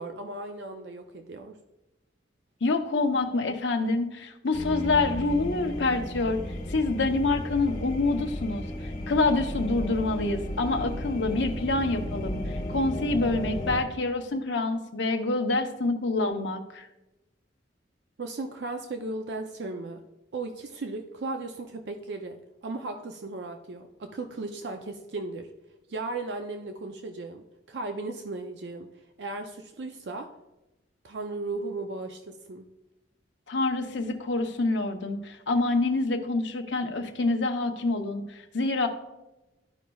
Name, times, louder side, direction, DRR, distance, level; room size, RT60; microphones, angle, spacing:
voice 1, 0.0-1.6 18.2-20.0 20.3-25.5 25.9-28.9 29.2-30.3 31.0-32.7, right 3 dB, 65° right, 5 dB, 0.5 m, -36 dB
voice 2, 2.6-6.4 6.7-16.9 33.5-38.9, left 3 dB, 75° left, 5 dB, 0.8 m, -27 dB
sound 1, 4.5-13.8, left 1 dB, 40° left, 1.3 m, -34 dB
12.5 x 5.2 x 2.3 m, 0.99 s
head